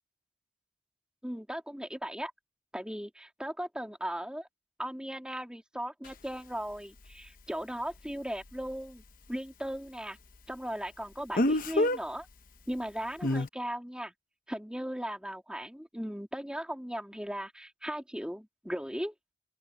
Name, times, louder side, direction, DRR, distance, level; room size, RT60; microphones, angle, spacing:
voice 1, 1.2-2.3 2.7-4.5 4.8-9.0 9.3-10.2 10.5-12.3 12.7-14.1 14.5-19.1, equal, 5° right, 2.4 m, -37 dB
Speech, 6.0-6.1 11.3-12.0 13.2-13.5, left 1 dB, 45° left, 0.9 m, -26 dB
open air
head